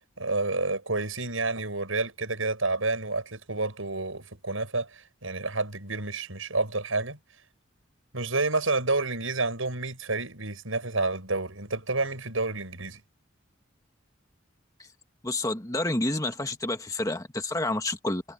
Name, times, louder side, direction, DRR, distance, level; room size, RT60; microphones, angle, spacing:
voice 1, 0.2-7.2 8.1-13.0, right 3 dB, 85° right, 6.7 m, -29 dB
voice 2, 15.2-18.2, left 2 dB, 15° left, 1.8 m, -29 dB
head